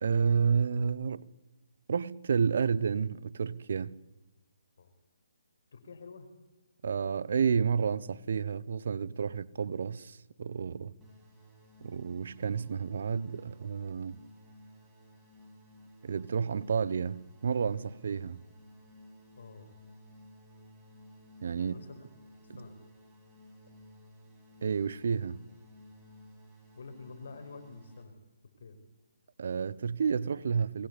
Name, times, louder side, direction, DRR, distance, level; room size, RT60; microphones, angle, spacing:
voice 1, 0.0-1.3 1.9-4.0 6.8-10.9 11.8-14.2 16.0-18.4 21.4-21.7 24.6-25.4 29.4-30.9, right 6 dB, 60° right, 1.0 m, -30 dB
voice 2, 5.7-6.3 10.9-11.0 19.4-19.7 21.6-22.1 22.6-22.7 26.8-28.1 28.6-28.8, left 4 dB, 60° left, 5.5 m, -48 dB
sound 1, 11.0-28.0, left 1 dB, 10° right, 6.3 m, -56 dB
22.5 x 19.5 x 8.5 m
figure-of-eight pair, 145°, 0 cm